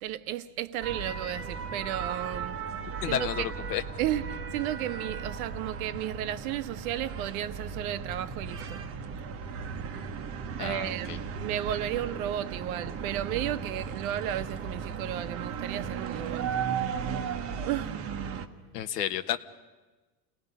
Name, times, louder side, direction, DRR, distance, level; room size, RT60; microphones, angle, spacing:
voice 1, 0.0-2.6 3.1-3.3 4.0-8.8 10.6-16.5 17.7-17.9, right 12 dB, 65° right, 1.1 m, -33 dB
sound 1, 0.8-18.5, right 6 dB, 30° right, 1.1 m, -36 dB
voice 2, 3.0-3.8 10.6-11.2 18.7-19.4, left 10 dB, 90° left, 1.4 m, -31 dB
29.0 x 19.0 x 5.5 m
supercardioid pair, 145°, 46 cm